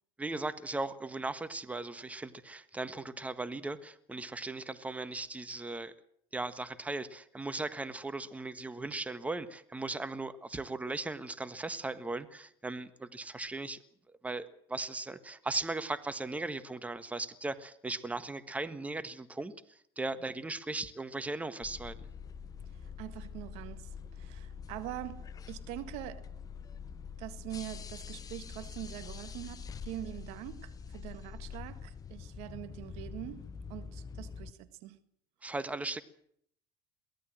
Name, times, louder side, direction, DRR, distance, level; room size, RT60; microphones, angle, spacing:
voice 1, 0.2-5.9 6.3-13.8 14.2-22.0 35.4-36.0, right 2 dB, 10° right, 1.5 m, -38 dB
sound 1, 21.6-34.5, left 6 dB, 35° left, 1.1 m, -45 dB
voice 2, 22.6-26.3 27.2-35.0, right 14 dB, 70° right, 1.7 m, -44 dB
22.5 x 17.0 x 7.6 m
supercardioid pair, 95°, 11 cm